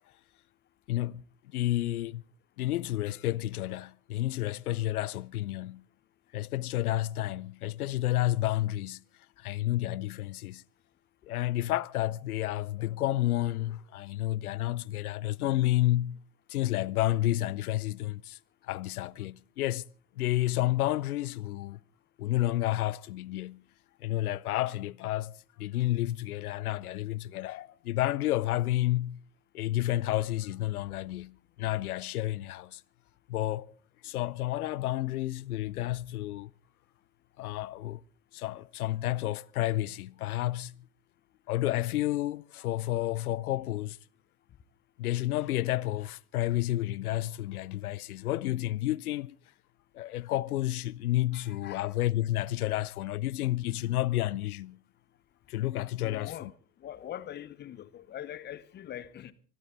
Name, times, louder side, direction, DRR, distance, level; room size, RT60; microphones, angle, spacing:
voice 1, 0.9-1.2 1.5-2.2 2.6-5.8 6.3-9.0 9.4-10.6 11.2-16.2 16.5-19.9 20.2-21.8 22.2-23.6 24.0-29.2 29.5-32.8 33.3-33.7 34.0-36.5 37.4-38.0 38.3-40.8 41.5-44.0 45.0-49.4 49.9-54.8 55.5-56.5, left 15 dB, 60° left, 0.7 m, -30 dB
voice 2, 51.3-51.9 52.7-52.8 56.0-59.3, left 11 dB, 20° left, 0.9 m, -43 dB
25.0 x 12.5 x 4.0 m
figure-of-eight pair, 90°, 49 cm